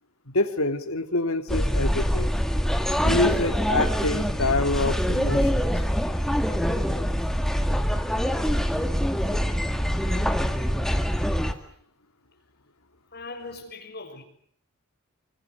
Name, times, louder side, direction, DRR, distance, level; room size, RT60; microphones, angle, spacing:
voice 1, 0.3-2.3 3.0-5.7, left 2 dB, 80° left, 2.6 m, -26 dB
sound 1, 1.5-11.5, equal, ahead, 1.9 m, -24 dB
voice 2, 13.1-14.2, left 3 dB, 45° left, 6.7 m, -39 dB
26.0 x 24.5 x 8.2 m
head